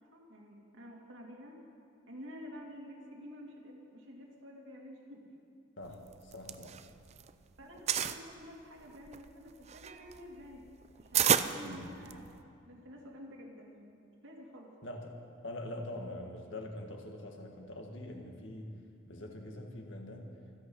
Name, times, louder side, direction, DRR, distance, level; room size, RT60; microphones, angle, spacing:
voice 1, 0.0-1.6 2.1-5.3 7.6-10.6 11.0-12.3 12.7-14.7 15.6-15.8, equal, 70° right, -1 dB, 2.5 m, -50 dB
voice 2, 5.8-6.8 11.6-12.0 14.8-18.7 19.1-20.3, left 1 dB, 65° left, 2 dB, 1.8 m, -44 dB
sound 1, 6.1-7.3 7.6-8.2 8.8-12.4, right 9 dB, 30° right, 0.4 m, -31 dB
25.5 x 8.7 x 5.5 m, 2.4 s
head